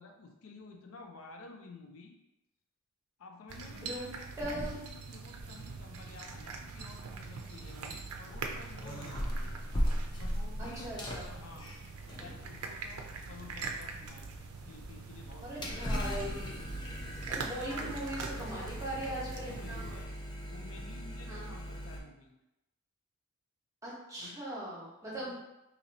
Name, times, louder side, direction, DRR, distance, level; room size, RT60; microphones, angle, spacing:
voice 1, 0.0-2.2 3.2-9.6 10.2-11.7 12.2-14.3 14.6-16.2 17.7-20.1 20.5-22.3 24.2-24.4 25.0-25.4, left 3 dB, 70° left, 1 dB, 0.5 m, -52 dB
sound 1, 3.5-20.0, right 4 dB, 90° right, 0.5 m, -44 dB
voice 2, 3.6-4.1 4.4-4.8 10.6-11.3 15.4-16.6 17.3-19.8 21.3-21.5 23.8-25.4, right 1 dB, 15° right, -6 dB, 1.0 m, -40 dB
sound 2, 4.4-5.1 5.4-22.0, equal, 20° left, 0.5 m, -40 dB
2.8 x 2.7 x 4.0 m, 0.93 s
head